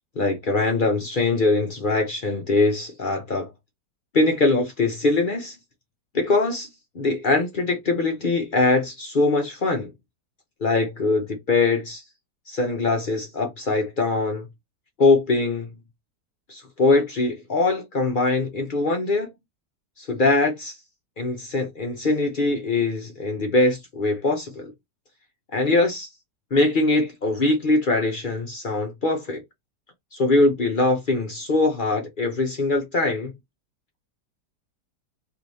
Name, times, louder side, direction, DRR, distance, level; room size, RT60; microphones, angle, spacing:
voice 1, 0.2-3.5 4.1-5.6 6.1-6.7 6.9-9.9 10.6-12.0 12.5-14.5 15.0-15.7 16.5-19.3 20.0-20.8 21.2-24.7 25.5-26.1 26.5-29.4 30.1-33.3, left 3 dB, 50° left, 0.6 m, -22 dB
3.1 x 3.1 x 4.0 m
omnidirectional pair, 1.8 m